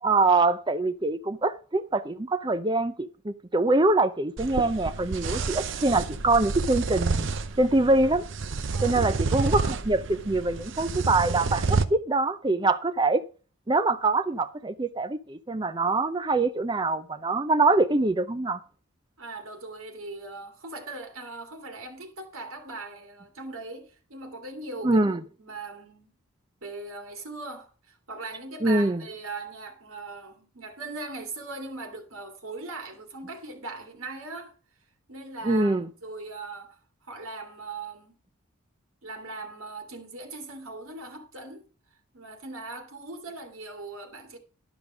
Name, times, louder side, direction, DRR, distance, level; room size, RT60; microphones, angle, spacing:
voice 1, 0.0-7.3 7.6-8.2 8.8-13.2 13.7-18.6 24.8-25.2 28.6-29.0 35.4-35.9, right 2 dB, 20° right, 0.5 m, -24 dB
sound 1, 4.4-11.8, right 4 dB, 60° right, 0.7 m, -29 dB
voice 2, 19.2-25.0 25.4-26.1 26.6-34.5 35.1-38.1 39.0-41.7 42.1-44.4, right 3 dB, 80° right, 2.4 m, -40 dB
12.0 x 5.2 x 6.1 m
head